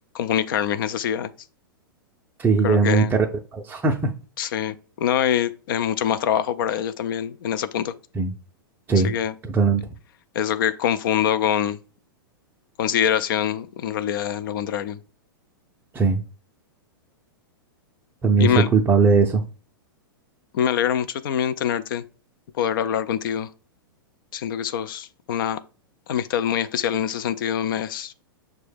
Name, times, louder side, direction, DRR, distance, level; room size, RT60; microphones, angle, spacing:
voice 1, 0.1-1.3 2.6-3.1 4.4-7.9 8.9-9.3 10.3-11.8 12.8-15.0 18.3-18.7 20.5-22.0 22.6-23.5 24.3-25.6 26.1-28.1, left 9 dB, 65° left, 0.4 m, -24 dB
voice 2, 2.4-3.3 3.5-4.1 8.1-8.3 8.9-9.1 9.4-9.8 15.9-16.2 18.2-19.4, right 4 dB, 15° right, 0.4 m, -19 dB
6.1 x 2.2 x 3.3 m
hypercardioid pair, 115°, 12 cm